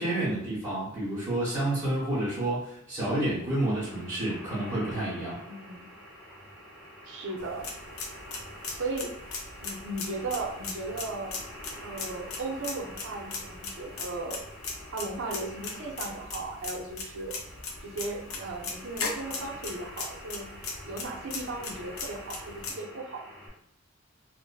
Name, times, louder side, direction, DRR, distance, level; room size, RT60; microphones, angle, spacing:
voice 1, 0.0-5.4, right 1 dB, 15° right, -12 dB, 1.0 m, -29 dB
sound 1, 3.5-23.5, equal, 10° left, 1.1 m, -47 dB
voice 2, 5.5-5.9 7.1-7.7 8.8-9.1 9.6-11.3 11.8-14.4 14.9-17.4 17.8-20.5 20.9-23.2, right 3 dB, 65° right, 1 dB, 0.5 m, -36 dB
sound 2, 7.4-22.7, left 4 dB, 90° left, 0.5 m, -39 dB
2.5 x 2.4 x 2.3 m, 0.71 s
head